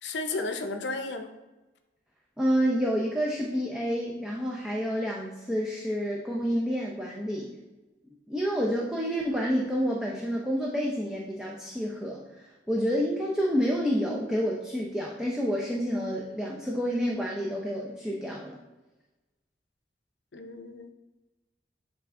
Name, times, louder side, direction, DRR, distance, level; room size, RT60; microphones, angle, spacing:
voice 1, 0.0-1.3 20.3-20.9, left 3 dB, 75° left, 6 dB, 0.7 m, -33 dB
voice 2, 2.4-7.5 8.3-18.6, equal, 5° right, -3 dB, 0.6 m, -29 dB
8.1 x 3.4 x 3.7 m, 1.1 s
head